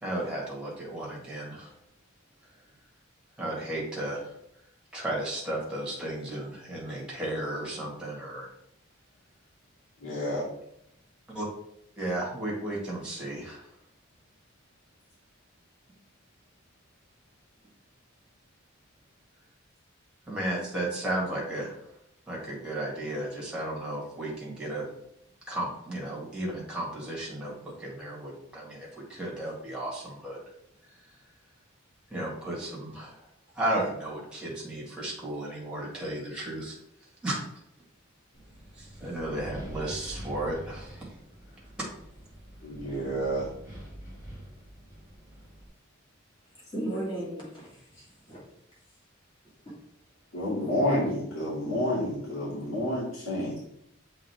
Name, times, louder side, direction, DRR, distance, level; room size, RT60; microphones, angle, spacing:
voice 1, 0.0-1.7 3.4-4.2 4.9-8.5 11.3-11.5 12.0-13.6 20.3-21.7 22.3-24.9 25.5-30.4 32.1-33.2 33.5-36.8 37.2-37.4 38.7-41.1, right 1 dB, 5° right, -4 dB, 1.8 m, -34 dB
voice 2, 10.0-10.4 42.6-43.5 50.3-53.6, equal, 75° left, -11 dB, 2.4 m, -29 dB
Wind, 38.3-45.7, equal, 40° left, 2.3 m, -45 dB
voice 3, 46.7-48.4 49.6-49.7 50.6-50.7 53.4-53.5, right 1 dB, 25° left, -6 dB, 2.4 m, -36 dB
7.4 x 3.7 x 3.5 m, 0.77 s
head